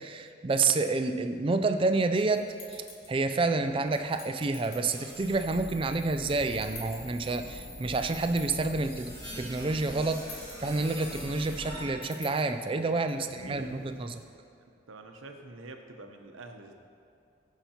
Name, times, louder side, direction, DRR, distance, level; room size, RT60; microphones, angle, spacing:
voice 1, 0.0-10.3 10.6-14.2, right 3 dB, 25° right, 8 dB, 0.3 m, -29 dB
sound 1, 1.7-14.2, left 2 dB, 85° left, 1.7 m, -51 dB
sound 2, 4.8-11.9, equal, 20° left, 2.0 m, -42 dB
voice 2, 13.1-13.8 14.6-16.8, right 2 dB, 85° right, 5 dB, 0.8 m, -47 dB
15.5 x 5.7 x 2.9 m, 2.6 s
head